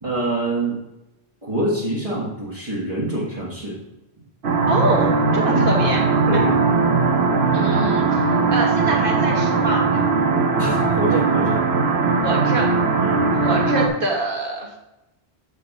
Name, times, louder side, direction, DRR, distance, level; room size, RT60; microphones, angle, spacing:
voice 1, 0.0-0.7 1.4-3.8 5.5-5.7 6.3-6.6 10.6-11.6 13.0-13.3, right 2 dB, 35° right, -7 dB, 1.6 m, -25 dB
sound 1, 4.4-13.9, right 4 dB, 80° right, 1.0 m, -19 dB
voice 2, 4.7-6.0 7.5-9.9 12.2-12.7 13.4-14.7, right 2 dB, 55° right, -1 dB, 1.7 m, -25 dB
6.8 x 4.2 x 5.4 m, 0.96 s
omnidirectional pair, 1.1 m